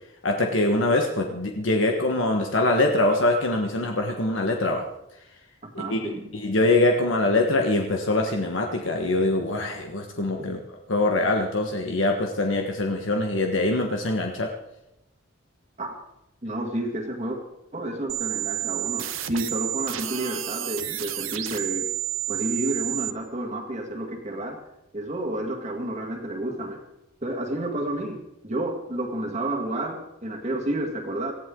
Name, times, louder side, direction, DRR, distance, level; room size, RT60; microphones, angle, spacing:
voice 1, 0.2-4.8 5.7-10.6 10.9-14.5, left 2 dB, 75° left, 2 dB, 1.4 m, -23 dB
voice 2, 5.6-6.3 10.4-10.5 15.8-15.9 16.4-17.4 17.7-21.9 22.3-24.6 24.9-26.8 27.2-31.3, right 1 dB, 35° right, 1 dB, 1.9 m, -30 dB
sound 1, 18.1-23.1, right 14 dB, 85° right, 1.0 m, -30 dB
18.5 x 14.5 x 3.8 m, 0.88 s
head